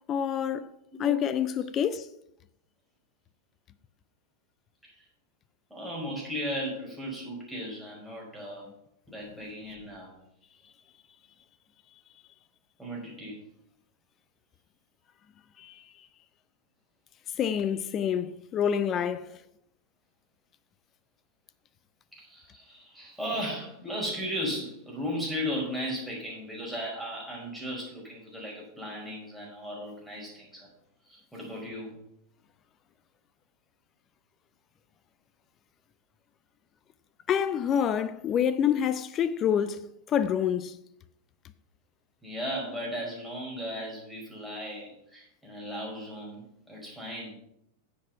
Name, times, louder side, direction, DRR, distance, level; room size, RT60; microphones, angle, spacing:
voice 1, 0.0-0.7 1.0-2.1 15.6-15.7 17.4-19.4 37.3-40.8, left 8 dB, 30° left, 0.5 m, -27 dB
voice 2, 5.7-8.7 9.1-10.1 12.8-13.4 22.2-30.7 31.0-32.0 42.2-47.3, equal, 5° right, 5.1 m, -36 dB
10.5 x 7.4 x 5.7 m
figure-of-eight pair, 90°, 0 cm